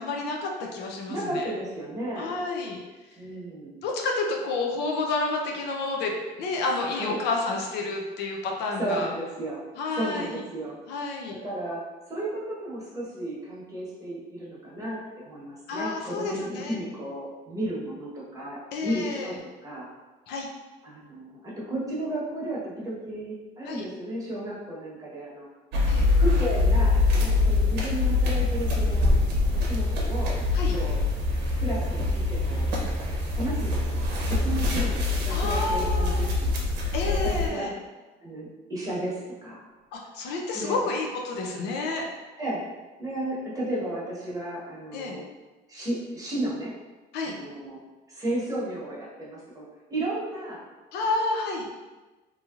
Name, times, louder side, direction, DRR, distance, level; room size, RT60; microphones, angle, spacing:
voice 1, 0.0-1.5 2.2-2.8 3.8-9.1 9.8-10.4 10.9-11.4 15.7-16.8 18.7-19.3 20.3-20.5 23.6-23.8 25.9-26.1 30.5-30.8 35.3-36.2 36.9-37.7 39.9-42.1 44.9-45.2 47.1-47.3 50.9-51.7, left 3 dB, 80° left, 0 dB, 0.5 m, -30 dB
voice 2, 1.1-2.3 3.2-3.8 6.9-7.2 8.8-9.6 9.9-10.8 11.3-19.4 19.6-19.9 20.8-25.5 26.2-29.1 29.5-30.4 30.7-31.0 31.6-32.7 33.3-36.6 37.0-37.7 38.2-39.6 40.5-40.8 42.4-42.6 43.0-45.2 45.7-46.8 47.2-47.8 48.1-50.6, right 1 dB, 20° right, -6 dB, 1.0 m, -33 dB
sound 1, 25.7-37.5, left 3 dB, 85° right, 0.7 m, -24 dB
3.0 x 2.7 x 2.4 m, 1.2 s
cardioid pair, 110°, 17 cm